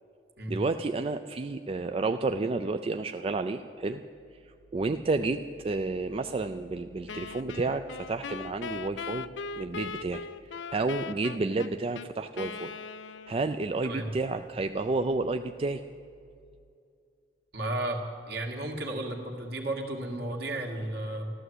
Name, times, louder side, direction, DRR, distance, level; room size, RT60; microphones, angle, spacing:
voice 1, 0.5-4.0 4.4-9.3 9.6-12.7 13.3-15.8, right 3 dB, 30° right, 8 dB, 0.4 m, -31 dB
Wind instrument woodwind instrument, 7.1-13.7, left 5 dB, 85° left, 0.5 m, -40 dB
voice 2, 17.5-21.3, right 1 dB, 60° right, 2 dB, 2.0 m, -33 dB
13.5 x 12.5 x 7.9 m, 2.4 s
head